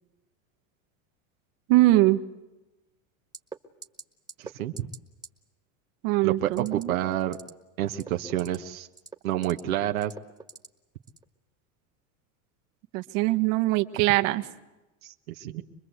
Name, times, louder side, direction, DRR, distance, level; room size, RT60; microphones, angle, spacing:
voice 1, 1.7-2.2 6.0-6.9 12.9-14.4, right 18 dB, 65° right, 9 dB, 1.5 m, -22 dB
sound 1, 3.3-3.6 3.8-4.0 4.3-4.5 4.8-5.0 5.2-5.3 6.5-6.8 7.2-7.5 7.9-8.6 8.9-9.6 10.0-10.7 11.1-11.2, right 3 dB, 10° right, 1.4 m, -42 dB
voice 2, 4.4-4.9 6.2-7.4 7.8-8.9 9.2-10.1 15.0-15.6, right 12 dB, 90° right, 4 dB, 1.3 m, -29 dB
25.0 x 21.5 x 8.1 m, 1.0 s
supercardioid pair, 130°, 41 cm